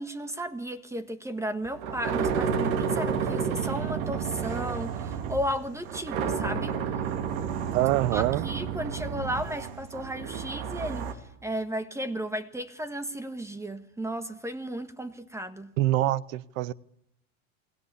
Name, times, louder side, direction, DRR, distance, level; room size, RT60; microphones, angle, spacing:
voice 1, 0.0-6.7 8.1-11.1 11.4-15.7, equal, 5° right, 1.6 m, -34 dB
sound 1, 1.6-11.1, right 7 dB, 70° right, 3.4 m, -31 dB
voice 2, 7.7-8.5 15.8-16.7, right 15 dB, 90° right, 1.1 m, -25 dB
28.5 x 20.5 x 8.5 m
supercardioid pair, 130°, 39 cm